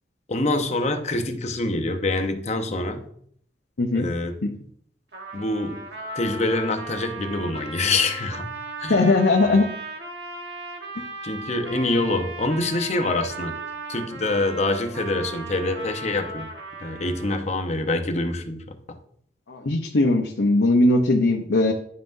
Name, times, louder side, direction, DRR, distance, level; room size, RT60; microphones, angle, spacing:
voice 1, 0.3-3.0 3.9-4.3 5.3-5.9 6.2-9.1 11.2-13.6 13.9-16.5 16.8-19.0, left 2 dB, 40° left, 0.8 m, -25 dB
Trumpet, 5.1-17.6, right 2 dB, 70° right, 1.3 m, -37 dB
voice 2, 8.9-9.7 19.5-21.7, left 2 dB, 85° left, 0.8 m, -19 dB
10.5 x 5.6 x 2.6 m
head